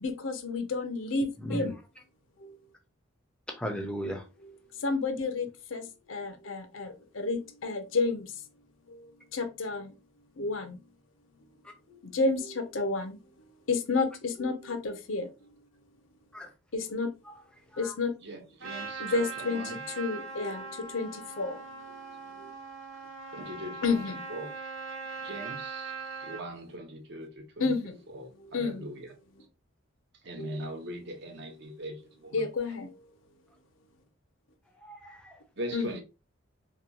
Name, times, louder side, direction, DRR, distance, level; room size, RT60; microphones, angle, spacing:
voice 1, 0.0-1.7 2.4-2.5 4.8-5.8 6.1-8.3 9.3-9.9 10.4-10.7 12.1-13.2 13.7-15.3 16.7-17.1 17.8-18.1 19.0-21.1 21.4-21.6 23.8-24.2 27.6-27.9 28.5-28.9 30.4-30.7 32.3-32.9 35.7-35.9, left 3 dB, 75° left, 0.5 m, -30 dB
voice 2, 1.4-1.7 3.5-4.2 16.3-16.5 17.7-17.9 34.8-35.4, equal, 5° left, 0.4 m, -36 dB
voice 3, 18.2-19.9 23.3-24.6 25.2-28.2 28.5-29.1 30.2-32.8 35.6-36.0, right 1 dB, 55° right, 0.6 m, -41 dB
Trumpet, 18.6-26.4, right 4 dB, 75° right, 0.9 m, -40 dB
2.9 x 2.2 x 2.5 m
head